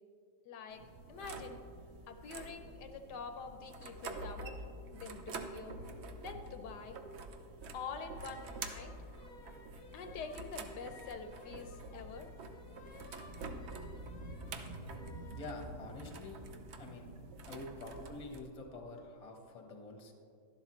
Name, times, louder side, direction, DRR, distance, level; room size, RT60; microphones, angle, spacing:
voice 1, 0.4-0.8 1.1-1.6 2.1-4.6 4.9-5.8 6.2-7.0 7.7-8.9 9.9-12.3, left 5 dB, 75° left, 7 dB, 1.2 m, -46 dB
sound 1, 0.7-18.4, right 2 dB, 60° right, 0.7 m, -47 dB
sound 2, 8.0-15.5, left 3 dB, 60° left, 0.5 m, -58 dB
voice 2, 15.3-16.4 16.8-17.1 17.5-20.1, left 2 dB, 25° left, 3 dB, 1.0 m, -47 dB
11.5 x 11.5 x 3.1 m, 2.5 s
omnidirectional pair, 1.9 m